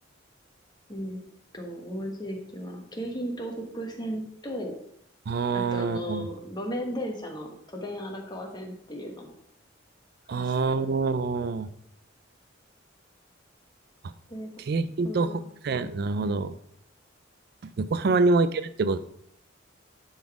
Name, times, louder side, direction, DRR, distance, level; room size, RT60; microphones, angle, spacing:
voice 1, 0.9-1.2 1.5-4.7 5.5-9.4 10.3-11.1 14.3-14.5 15.0-15.5 16.2-16.4, equal, 20° left, 2 dB, 1.4 m, -36 dB
voice 2, 5.3-6.3 10.3-11.7 14.7-15.3 15.6-16.5 17.8-19.0, right 3 dB, 55° right, 13 dB, 0.4 m, -25 dB
10.5 x 4.1 x 4.8 m, 0.69 s
head